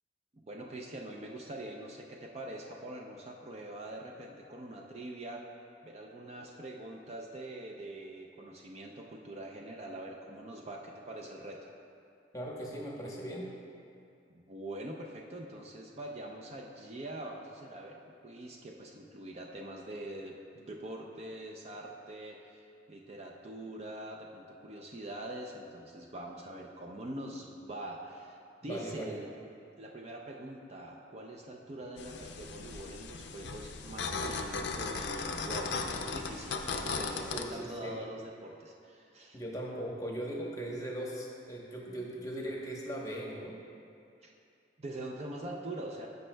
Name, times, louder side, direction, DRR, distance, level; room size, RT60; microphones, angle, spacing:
voice 1, 0.3-5.4 5.8-11.7 14.3-29.4 29.8-39.4 44.2-44.3 44.8-46.1, right 1 dB, 35° right, 0 dB, 0.5 m, -44 dB
voice 2, 12.3-13.5 28.6-29.2 37.3-37.9 39.3-43.6, right 1 dB, 20° left, -3 dB, 1.0 m, -39 dB
sound 1, 32.0-37.4, left 4 dB, 65° left, 0.5 m, -37 dB
15.0 x 5.3 x 2.2 m, 2.5 s
head